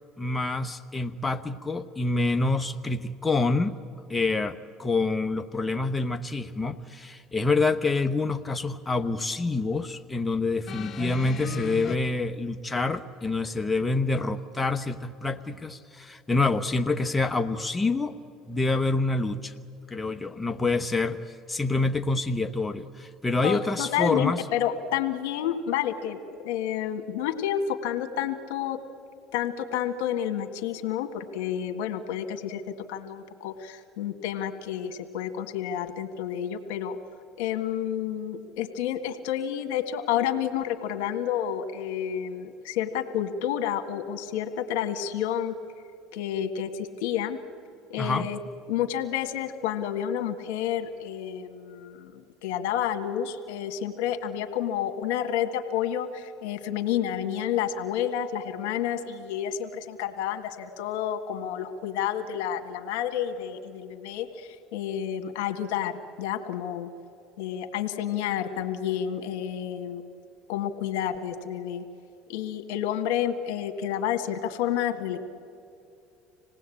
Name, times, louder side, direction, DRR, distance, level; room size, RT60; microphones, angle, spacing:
voice 1, 0.2-3.8 4.1-18.2 18.5-19.5 19.9-24.4 48.0-48.3, left 3 dB, 15° left, 7 dB, 1.1 m, -27 dB
sound 1, 10.7-12.0 13.0-13.1, left 8 dB, 45° left, 0.9 m, -36 dB
voice 2, 23.4-28.8 29.3-37.0 37.4-45.5 46.1-47.4 47.9-48.4 48.7-66.9 67.4-70.0 70.5-71.8 72.3-75.2, left 10 dB, 80° left, 7 dB, 1.8 m, -30 dB
26.5 x 18.5 x 8.7 m, 2.6 s
supercardioid pair, 85°, 0 cm